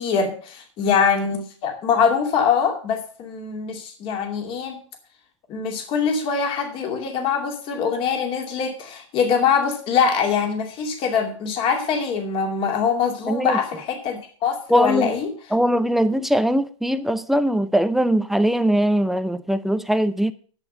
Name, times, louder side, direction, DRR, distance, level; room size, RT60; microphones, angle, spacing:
voice 1, 0.0-4.8 5.5-15.3, left 6 dB, 35° left, 2.6 m, -23 dB
voice 2, 13.3-13.6 14.7-15.1 15.5-20.3, equal, ahead, 0.5 m, -21 dB
10.5 x 6.9 x 6.6 m
hypercardioid pair, 125°, 16 cm